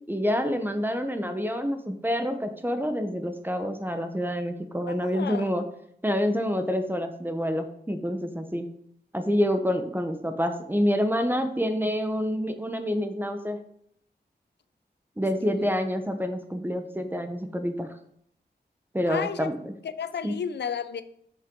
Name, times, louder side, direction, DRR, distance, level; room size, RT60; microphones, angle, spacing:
voice 1, 0.1-5.6 6.0-8.7 9.1-13.6 15.2-17.9 18.9-19.7 20.2-20.3, equal, 10° right, 0.8 m, -27 dB
voice 2, 4.9-5.5 15.4-15.7 19.1-19.5 19.8-21.0, left 7 dB, 80° left, 0.5 m, -33 dB
6.4 x 5.7 x 3.7 m
wide cardioid pair, 70°, 18 cm